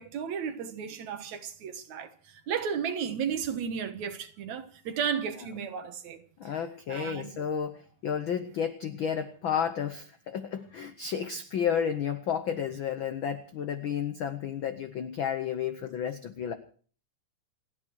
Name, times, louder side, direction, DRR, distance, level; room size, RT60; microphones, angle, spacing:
voice 1, 0.0-6.2 6.9-7.3, right 7 dB, 70° right, 2.6 m, -34 dB
voice 2, 6.4-16.5, left 8 dB, 75° left, 1.1 m, -32 dB
29.0 x 9.9 x 4.6 m
omnidirectional pair, 3.5 m